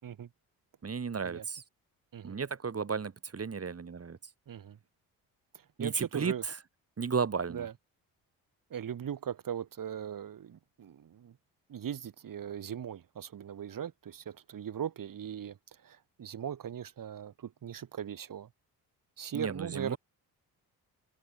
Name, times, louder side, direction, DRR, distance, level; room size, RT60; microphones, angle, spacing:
voice 1, 0.8-1.6 2.2-4.2 5.8-6.6 7.0-7.7 19.3-20.0, right 5 dB, 40° right, 3.8 m, -34 dB
voice 2, 4.5-4.8 5.5-6.4 7.5-7.7 8.7-11.4 11.7-18.5 19.2-20.0, right 9 dB, 55° right, 3.5 m, -39 dB
open air
supercardioid pair, 65°, 39 cm